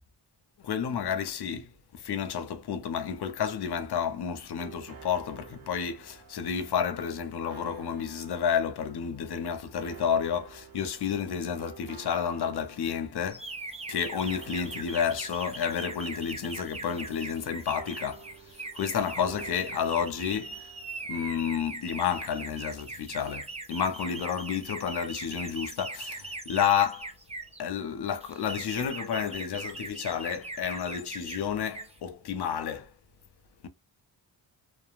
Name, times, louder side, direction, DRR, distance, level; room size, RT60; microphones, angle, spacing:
voice 1, 0.6-13.5 13.9-18.3 18.7-20.7 21.1-27.1 27.6-32.9, left 7 dB, 65° left, 0.7 m, -31 dB
sound 1, 3.6-21.6, right 7 dB, 50° right, 0.8 m, -51 dB
sound 2, 13.3-27.6 28.2-31.4 31.7-32.0, right 3 dB, 15° right, 0.5 m, -40 dB
3.0 x 2.2 x 2.4 m
cardioid pair, 90°, 43 cm